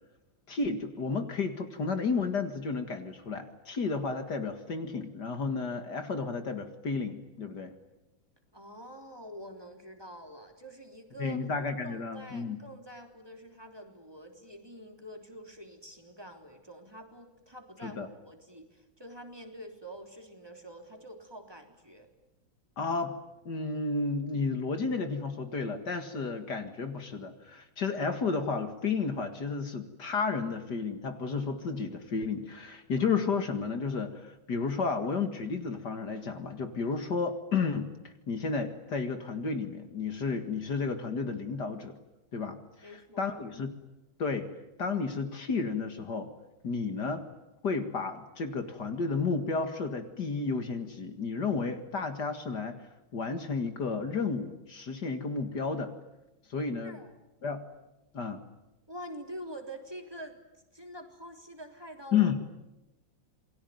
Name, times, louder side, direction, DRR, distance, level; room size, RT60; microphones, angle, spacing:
voice 1, 0.5-7.7 11.2-12.6 17.8-18.1 22.8-23.2 23.5-42.0 42.3-42.9 43.2-43.7 44.2-44.5 44.8-46.3 46.6-47.3 47.6-52.8 53.1-55.9 56.5-57.0 57.4-57.6 58.1-58.4 62.1-62.4, left 4 dB, 60° left, 7 dB, 2.5 m, -32 dB
voice 2, 8.5-11.4 11.8-22.1 42.8-43.3 56.8-57.1 58.9-60.4 60.7-62.3, right 1 dB, 10° right, 4 dB, 3.4 m, -46 dB
28.0 x 22.0 x 9.4 m, 0.97 s
omnidirectional pair, 2.1 m